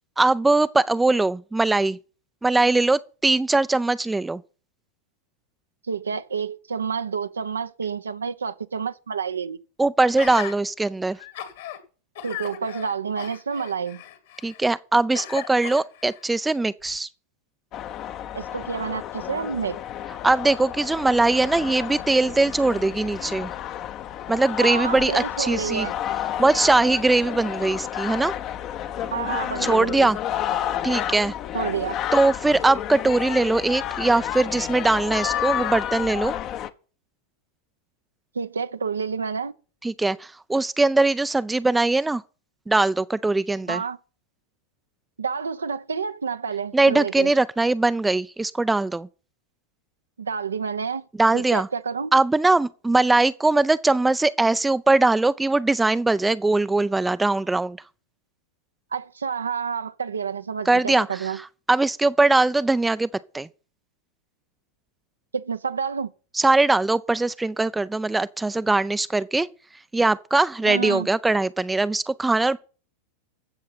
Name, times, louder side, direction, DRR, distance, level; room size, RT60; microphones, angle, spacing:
voice 1, 0.2-2.0 2.4-4.4 9.8-11.2 14.4-17.1 20.2-23.5 24.3-25.9 26.4-28.3 29.6-30.2 30.8-31.3 32.1-36.3 39.8-42.2 42.7-43.8 46.7-49.1 51.2-51.7 52.1-57.8 60.7-61.1 61.7-63.1 63.3-63.5 66.3-69.5 69.9-72.6, right 2 dB, 10° right, 0.5 m, -21 dB
voice 2, 5.9-9.6 12.2-14.0 18.3-19.8 24.6-25.9 29.1-30.1 31.5-32.0 38.3-39.5 43.7-44.0 45.2-47.3 50.2-51.1 51.3-52.1 58.9-61.4 65.3-66.1 70.6-71.1, right 6 dB, 75° right, 0.7 m, -29 dB
Gasp, 10.2-10.6 11.1-11.8 12.2-14.7 15.1-16.2 16.9-17.0, left 11 dB, 60° left, 2.0 m, -37 dB
sound 1, 17.7-36.7, left 11 dB, 35° left, 0.8 m, -31 dB
15.0 x 6.6 x 5.9 m
figure-of-eight pair, 90°, 0 cm